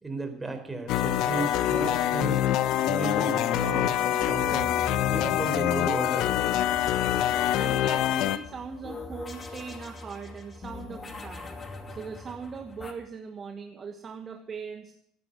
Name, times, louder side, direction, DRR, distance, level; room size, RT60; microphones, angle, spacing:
voice 1, 0.0-2.4 2.8-4.7 5.1-6.3, right 3 dB, 15° right, 6 dB, 4.0 m, -34 dB
sound 1, 0.9-8.4, left 12 dB, 65° left, 0.9 m, -25 dB
sound 2, 4.2-12.9, left 3 dB, 30° left, 2.5 m, -41 dB
voice 2, 7.5-11.5 11.9-14.9, right 6 dB, 35° right, 6 dB, 1.4 m, -40 dB
16.0 x 9.5 x 8.0 m, 0.72 s
supercardioid pair, 85°, 0 cm